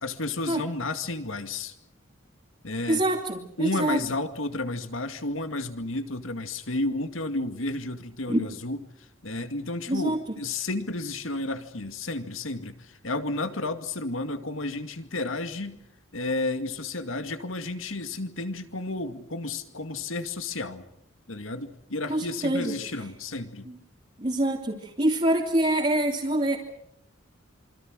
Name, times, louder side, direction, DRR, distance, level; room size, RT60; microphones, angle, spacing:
voice 1, 0.0-1.7 2.6-3.0 3.6-8.8 9.2-15.8 16.1-20.8 21.3-23.7, left 2 dB, 85° left, 8 dB, 2.3 m, -32 dB
voice 2, 2.9-4.0 8.3-8.4 9.9-10.2 22.1-22.7 23.6-23.8 24.2-26.6, right 1 dB, 30° right, -2 dB, 2.8 m, -25 dB
27.0 x 25.0 x 6.4 m, 0.75 s
head